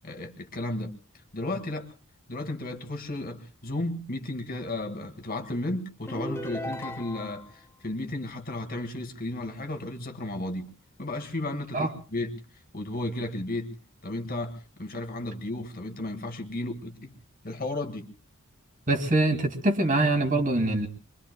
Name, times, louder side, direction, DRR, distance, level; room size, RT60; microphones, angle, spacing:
voice 1, 0.0-0.9 1.3-1.9 2.3-10.7 11.0-12.4 12.7-13.8 14.0-17.1 17.4-18.1, left 1 dB, 40° left, 6 dB, 1.7 m, -34 dB
sound 1, 6.1-7.5, left 1 dB, 10° left, 0.8 m, -36 dB
voice 2, 18.9-20.9, right 2 dB, 35° right, 5 dB, 2.2 m, -24 dB
28.0 x 23.0 x 2.2 m, 0.36 s
head